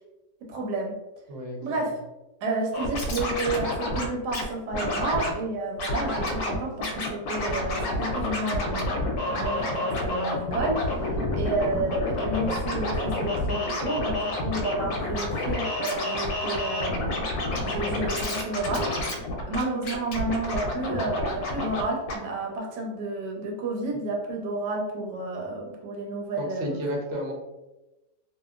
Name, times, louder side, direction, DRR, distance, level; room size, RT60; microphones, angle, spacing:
voice 1, 0.4-1.0 1.6-1.9 2.4-10.9 11.3-18.9 19.5-26.8, right 2 dB, 85° right, -1 dB, 1.3 m, -31 dB
voice 2, 1.3-1.6 11.2-11.5 26.4-27.3, equal, 60° right, -1 dB, 0.9 m, -32 dB
Scratching (performance technique), 2.7-4.4 4.7-5.3 5.8-6.6 6.8-21.8 22.1-22.2, left 1 dB, 75° left, 1.0 m, -29 dB
2.8 x 2.4 x 2.4 m, 1.0 s
omnidirectional pair, 1.8 m